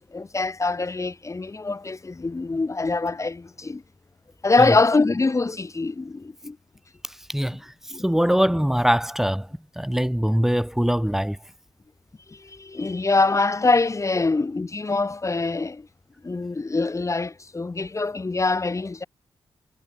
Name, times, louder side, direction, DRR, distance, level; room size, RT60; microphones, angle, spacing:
voice 1, 0.0-3.8 4.4-6.6 7.9-8.0 12.3-15.9 16.2-19.0, left 3 dB, 30° left, 3.5 m, -24 dB
voice 2, 7.3-7.7 8.0-9.5 9.8-11.4, equal, 5° right, 2.8 m, -22 dB
cardioid pair, 70°, 10 cm